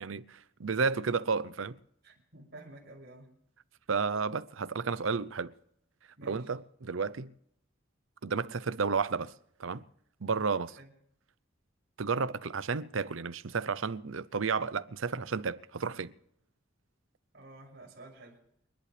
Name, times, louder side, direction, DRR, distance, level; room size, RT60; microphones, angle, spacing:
voice 1, 0.0-1.8 3.9-5.5 6.2-7.3 8.2-9.3 9.6-9.8 10.2-10.8 12.0-16.1, right 5 dB, 90° right, 0.7 m, -32 dB
voice 2, 2.0-3.3 6.2-6.5 10.8-10.9 17.3-18.4, right 2 dB, 55° right, 6.8 m, -51 dB
29.5 x 11.0 x 3.4 m
head